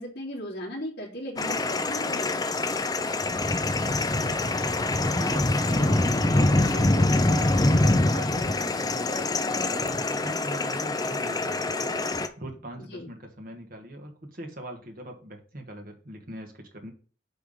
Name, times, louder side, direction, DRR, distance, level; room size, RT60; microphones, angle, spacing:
voice 1, 0.0-2.8 12.9-13.1, equal, 65° left, -5 dB, 3.0 m, -37 dB
sound 1, 1.4-12.3, left 2 dB, 20° left, 0.6 m, -25 dB
voice 2, 4.1-11.9 12.4-16.9, right 1 dB, 50° right, 2 dB, 1.6 m, -41 dB
8.0 x 3.5 x 5.2 m, 0.40 s
head